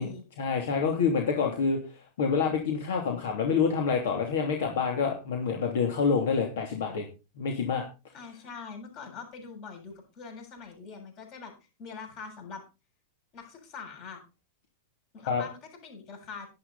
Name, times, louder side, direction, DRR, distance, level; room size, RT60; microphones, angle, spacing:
voice 1, 0.4-1.8 2.2-7.0 7.4-7.8 15.3-15.4, left 5 dB, 75° left, 2 dB, 3.0 m, -27 dB
voice 2, 8.1-11.5 11.8-12.6 13.3-14.2 15.1-16.5, left 5 dB, 45° left, 3 dB, 7.4 m, -43 dB
11.5 x 11.0 x 4.2 m, 0.30 s
hypercardioid pair, 130°, 0 cm